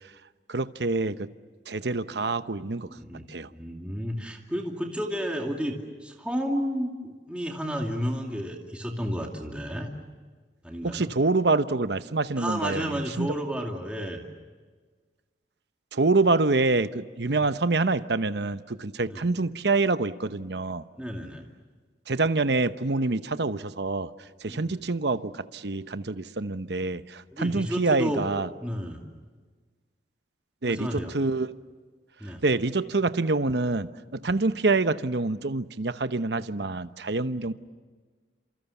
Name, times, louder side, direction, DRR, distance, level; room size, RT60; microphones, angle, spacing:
voice 1, 0.5-1.3 1.7-2.9 3.3-3.5 10.8-13.3 15.9-20.8 22.1-24.1 24.4-28.5 30.6-31.5 32.4-37.5, right 3 dB, 70° right, 12 dB, 0.9 m, -26 dB
voice 2, 3.5-9.9 10.6-11.1 12.4-14.2 17.3-17.5 19.1-19.3 21.0-21.4 24.4-24.8 27.3-28.2 28.6-29.0 30.6-31.1 32.2-32.4, equal, 5° right, 1 dB, 2.5 m, -32 dB
29.5 x 27.5 x 7.2 m, 1.4 s
head